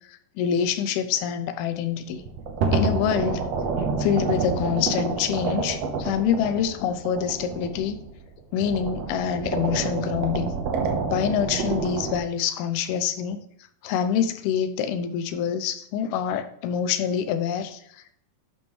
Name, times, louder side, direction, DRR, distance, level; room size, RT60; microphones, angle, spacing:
voice 1, 0.1-2.2 2.7-3.5 4.0-8.0 8.5-10.5 11.1-13.4 13.8-18.1, left 8 dB, 85° left, 9 dB, 2.6 m, -26 dB
sound 1, 2.1-8.3 8.6-12.2, right 4 dB, 85° right, 1.4 m, -28 dB
11.0 x 5.3 x 3.1 m, 0.69 s
omnidirectional pair, 4.4 m